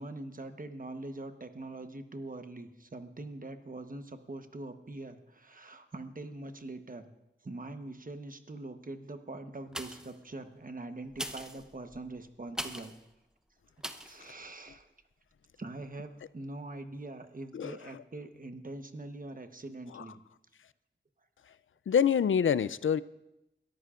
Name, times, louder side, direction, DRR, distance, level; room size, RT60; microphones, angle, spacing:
voice 1, 0.0-7.1 7.4-13.0 14.0-14.9 15.6-20.2, right 2 dB, 45° right, 8 dB, 1.1 m, -43 dB
sound 1, 9.7-10.2 11.1-13.0 13.8-14.2 14.7-14.8, equal, 5° right, 0.9 m, -41 dB
voice 2, 17.5-18.0 19.9-20.0 21.9-23.0, left 7 dB, 90° left, 17 dB, 0.4 m, -27 dB
21.5 x 13.5 x 2.5 m, 0.91 s
wide cardioid pair, 55°, 20 cm